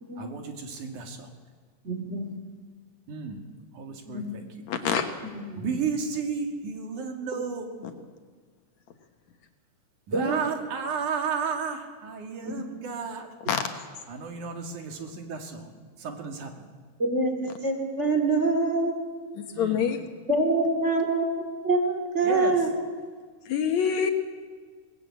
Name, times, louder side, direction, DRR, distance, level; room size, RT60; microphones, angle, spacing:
voice 1, 0.2-1.3 3.1-3.4 3.7-4.5 5.5-7.9 10.1-13.3 14.1-15.7 16.0-16.7 19.5-19.9 22.2-22.6, right 5 dB, 75° right, 3.6 m, -33 dB
voice 2, 1.8-2.3 4.1-4.2 5.5-5.7 10.1-10.4 12.4-12.5 17.0-19.0 20.3-22.7, right 2 dB, 20° right, 3.2 m, -25 dB
voice 3, 4.7-5.1 13.5-13.8 19.4-20.0 23.5-24.1, left 7 dB, 65° left, 2.4 m, -26 dB
21.5 x 19.0 x 8.6 m
omnidirectional pair, 3.6 m